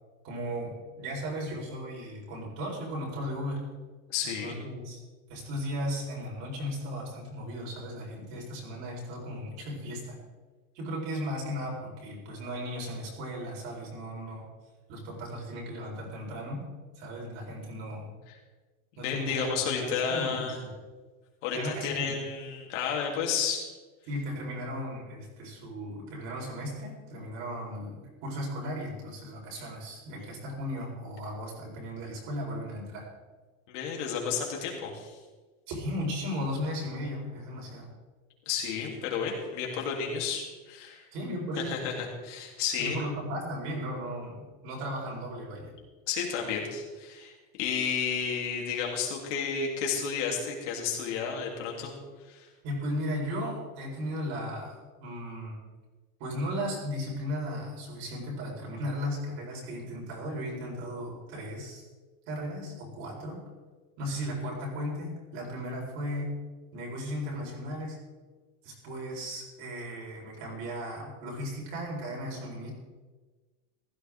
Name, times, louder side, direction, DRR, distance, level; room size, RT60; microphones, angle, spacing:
voice 1, 0.2-3.7 4.2-5.0 5.3-10.2 10.7-14.5 14.9-16.6 17.0-18.1 19.0-20.7 21.5-22.2 24.1-33.1 35.7-37.9 41.1-41.7 42.8-45.7 52.6-55.6 56.2-61.8 62.3-63.4 64.0-66.4 66.7-68.0 68.6-72.7, equal, 45° right, -2 dB, 4.7 m, -36 dB
voice 2, 4.1-4.5 19.0-20.6 21.4-23.7 33.7-35.2 38.4-41.0 41.6-43.0 46.1-51.9 52.3-52.4, left 6 dB, 65° left, -1 dB, 3.4 m, -32 dB
16.0 x 13.0 x 3.7 m, 1.3 s
supercardioid pair, 170°, 39 cm